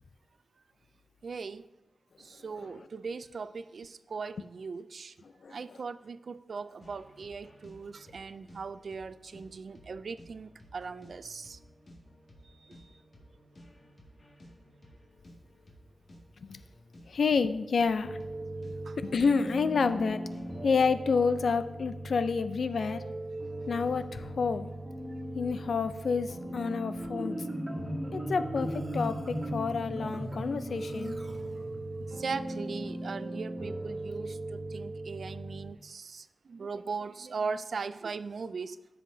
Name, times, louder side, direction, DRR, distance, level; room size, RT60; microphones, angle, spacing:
voice 1, 1.2-1.7 2.2-5.2 5.5-11.6 12.4-12.9 18.9-19.0 32.1-38.8, right 5 dB, 70° right, 14 dB, 0.3 m, -39 dB
sound 1, 6.8-20.7, equal, 55° left, 1.9 m, -56 dB
voice 2, 17.1-18.2 19.0-20.2 20.6-23.1 23.7-24.7 25.3-27.4 28.1-31.2, left 5 dB, 75° left, 12 dB, 0.4 m, -29 dB
sound 2, 18.0-35.7, right 1 dB, 45° right, 1.6 m, -39 dB
Marimba xylophone, 27.0-32.1, equal, 25° right, 1.5 m, -37 dB
14.5 x 5.7 x 2.7 m, 1.1 s
wide cardioid pair, 85°, 0 cm